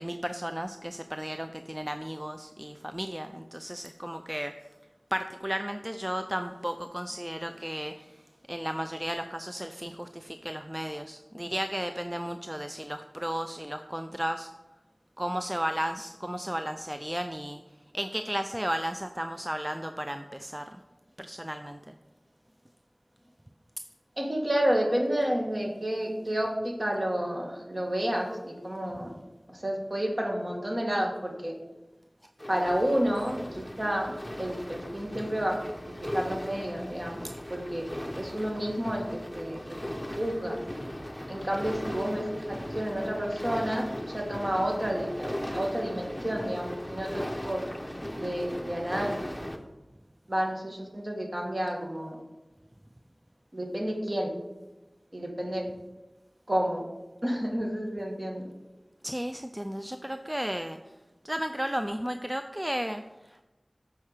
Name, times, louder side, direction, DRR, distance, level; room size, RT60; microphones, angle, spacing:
voice 1, 0.0-4.5 5.1-8.2 8.5-14.5 15.2-17.6 17.9-20.7 21.2-21.9 59.0-60.8 61.2-63.4, equal, 15° right, 7 dB, 0.4 m, -34 dB
voice 2, 24.2-29.1 29.5-31.5 32.5-35.6 36.0-37.2 37.5-37.9 38.1-39.8 40.2-40.6 41.3-47.6 48.2-49.5 50.3-52.2 53.5-54.3 55.1-55.7 56.5-56.8 57.2-58.5, equal, 40° right, 0 dB, 1.9 m, -30 dB
sound 1, 32.4-49.6, equal, 10° left, 0.9 m, -38 dB
8.6 x 4.7 x 6.6 m, 1.1 s
wide cardioid pair, 45°, 0 cm